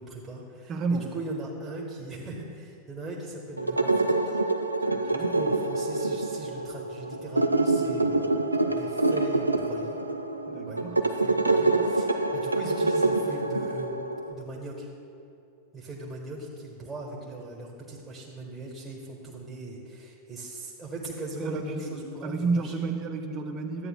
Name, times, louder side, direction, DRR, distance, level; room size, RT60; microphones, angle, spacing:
voice 1, 0.0-0.8 1.1-4.4 5.1-8.4 8.7-10.0 10.7-14.9 15.7-22.7, right 2 dB, 15° right, -4 dB, 1.3 m, -39 dB
voice 2, 0.7-1.1 4.9-5.4 10.5-11.0 11.4-11.8 21.4-23.9, right 4 dB, 35° right, 5 dB, 0.7 m, -32 dB
sound 1, 3.6-14.3, right 2 dB, 85° right, 0.4 m, -26 dB
12.5 x 8.8 x 2.2 m, 2.7 s
figure-of-eight pair, 90°, 0 cm